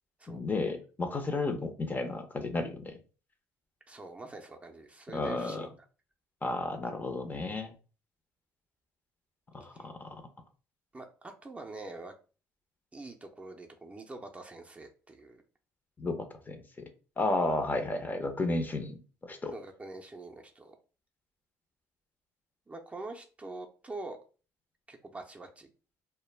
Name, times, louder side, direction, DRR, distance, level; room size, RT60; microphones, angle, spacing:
voice 1, 0.3-3.0 5.1-5.7 6.4-7.7 9.5-10.2 16.0-16.6 17.2-19.0 19.2-19.5, left 2 dB, 25° left, 7 dB, 0.6 m, -32 dB
voice 2, 3.9-5.7 9.6-9.9 10.9-12.1 12.9-15.4 19.5-20.8 22.7-24.2 24.9-25.7, right 2 dB, 20° right, 3 dB, 0.5 m, -45 dB
2.2 x 2.1 x 3.2 m, 0.36 s
supercardioid pair, 70°, 7 cm